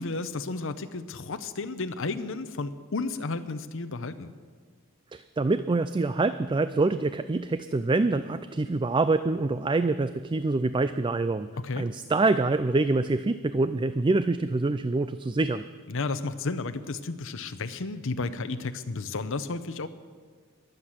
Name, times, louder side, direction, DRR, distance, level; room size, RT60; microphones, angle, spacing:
voice 1, 0.0-4.3 11.6-11.9 15.9-19.9, left 3 dB, 65° left, 9 dB, 0.8 m, -32 dB
voice 2, 5.1-11.5 11.8-15.6, right 3 dB, 25° right, 13 dB, 0.4 m, -25 dB
22.5 x 8.1 x 7.4 m, 1.5 s
head